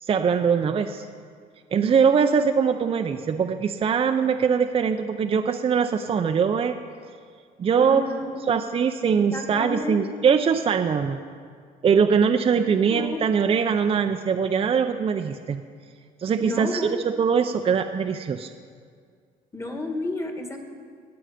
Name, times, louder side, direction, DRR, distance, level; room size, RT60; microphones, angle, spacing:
voice 1, 0.0-1.1 1.7-6.7 7.6-8.0 8.5-11.2 11.8-15.6 16.2-18.5, right 6 dB, 35° right, 6 dB, 0.6 m, -22 dB
voice 2, 7.7-8.6 9.1-10.0 12.9-13.3 16.4-17.0 19.5-20.6, left 2 dB, 15° left, 4 dB, 1.7 m, -31 dB
19.0 x 8.0 x 5.1 m, 2.1 s
cardioid pair, 110°, 17 cm